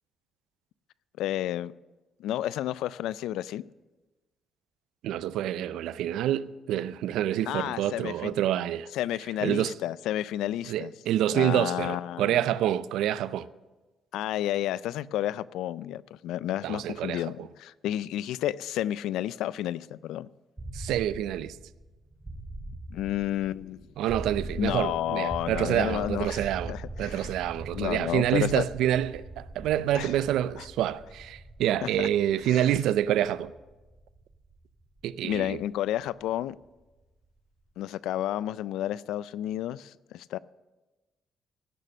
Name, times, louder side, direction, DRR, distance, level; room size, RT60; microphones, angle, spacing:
voice 1, 1.2-1.7 2.2-3.6 7.5-8.3 8.9-10.9 11.3-12.5 14.1-20.3 22.9-23.8 24.6-27.3 27.7-28.6 29.9-30.1 30.6-30.7 31.8-32.1 32.5-32.6 35.2-36.6 37.8-40.4, left 13 dB, 90° left, 0.3 m, -31 dB
voice 2, 5.0-8.9 9.4-9.7 10.7-13.5 16.6-17.5 20.7-21.6 24.0-26.7 27.0-33.5 35.0-35.6, right 11 dB, 85° right, 0.4 m, -27 dB
sound 1, 20.6-36.4, right 2 dB, 15° right, 2.3 m, -42 dB
16.0 x 6.7 x 6.5 m
cardioid pair, 90°, 0 cm